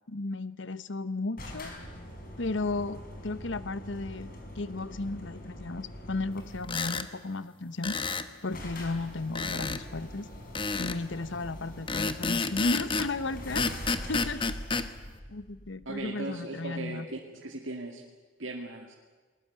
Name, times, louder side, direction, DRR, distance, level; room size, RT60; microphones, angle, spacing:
voice 1, 0.1-1.7 2.4-8.0 8.4-10.3 10.7-13.7 14.1-14.4 15.3-17.1, left 3 dB, 65° left, 15 dB, 1.0 m, -34 dB
sound 1, 1.4-6.9 7.9-8.0 8.2-8.3 8.5-16.0, left 1 dB, 45° left, 4.8 m, -43 dB
sound 2, 6.6-7.1 7.8-8.3 9.4-9.8 10.6-11.0 11.9-13.1 13.6-14.9, left 4 dB, 25° left, 1.1 m, -30 dB
voice 2, 15.9-18.0 18.4-18.9, right 2 dB, 70° right, 0 dB, 2.3 m, -38 dB
21.0 x 20.0 x 9.4 m, 1.4 s
head